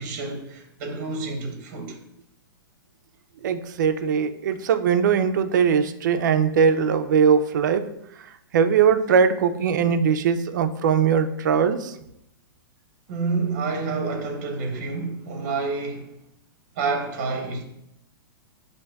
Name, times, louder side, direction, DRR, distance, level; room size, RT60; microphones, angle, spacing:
voice 1, 0.0-2.0 13.1-16.1 16.8-17.6, right 4 dB, 30° right, 0.7 m, -28 dB
voice 2, 3.4-7.8 8.5-11.9, right 6 dB, 50° right, 0.3 m, -20 dB
7.3 x 2.6 x 2.2 m
hypercardioid pair, 170°, 12 cm